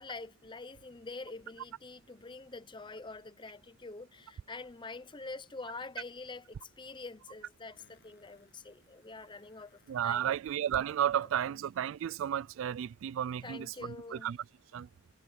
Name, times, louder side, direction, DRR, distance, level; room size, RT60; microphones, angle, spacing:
voice 1, 0.0-10.4 11.5-11.6 13.4-14.3, left 3 dB, 25° left, 0.7 m, -46 dB
Fart, 6.7-6.8 7.8-10.3 12.7-12.8, left 4 dB, 55° left, 7.1 m, -69 dB
voice 2, 9.9-14.4 14.7-14.9, right 10 dB, 70° right, 0.3 m, -33 dB
head